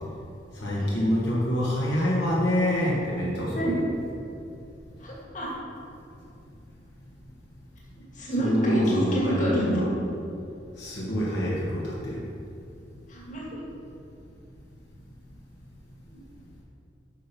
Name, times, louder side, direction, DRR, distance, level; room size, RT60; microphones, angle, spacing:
voice 1, 0.6-3.8 8.4-9.9 10.8-12.2, equal, 70° left, -6 dB, 2.0 m, -26 dB
voice 2, 5.0-5.5 7.9-9.8 13.1-13.6 16.1-16.2, right 1 dB, 45° left, -5 dB, 2.3 m, -28 dB
9.5 x 6.0 x 5.4 m, 2.7 s
head